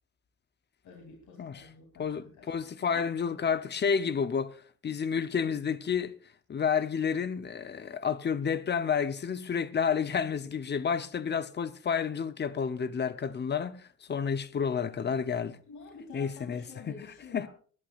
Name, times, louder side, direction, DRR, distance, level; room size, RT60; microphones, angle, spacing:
voice 1, 0.8-2.7 2.9-3.1 15.7-17.5, left 4 dB, 75° left, 3.3 m, -49 dB
voice 2, 2.0-4.6 4.8-6.2 6.5-15.6 16.1-17.0 17.3-17.5, left 6 dB, 35° left, 0.9 m, -30 dB
20.0 x 11.0 x 2.5 m
cardioid pair, 130°, 29 cm